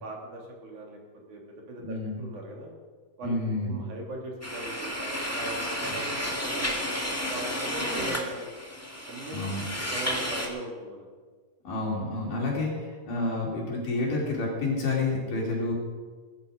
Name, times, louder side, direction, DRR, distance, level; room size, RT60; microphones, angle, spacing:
voice 1, 0.0-1.0 1.3-2.7 3.2-8.5 9.1-9.4 9.9-11.1, right 2 dB, 65° right, -1 dB, 4.1 m, -40 dB
voice 2, 1.8-2.2 3.2-3.8 9.3-9.6 11.7-15.7, left 2 dB, 75° left, -2 dB, 5.2 m, -29 dB
sound 1, 4.4-10.5, equal, 5° left, 1.4 m, -32 dB
20.5 x 10.5 x 5.2 m, 1.4 s
omnidirectional pair, 3.8 m